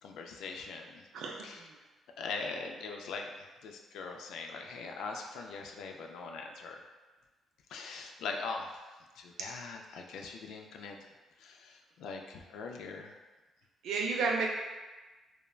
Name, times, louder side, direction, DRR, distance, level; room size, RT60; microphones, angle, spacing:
voice 1, 0.0-1.0 1.4-1.6 2.2-3.3 3.6-6.8 7.7-8.7 9.2-11.0 11.4-13.1, left 4 dB, 80° left, 2 dB, 0.3 m, -41 dB
voice 2, 1.1-1.8 9.4-9.5 13.8-14.5, right 4 dB, 80° right, 0 dB, 0.4 m, -32 dB
3.1 x 2.1 x 2.3 m, 1.2 s
cardioid pair, 90°, 0 cm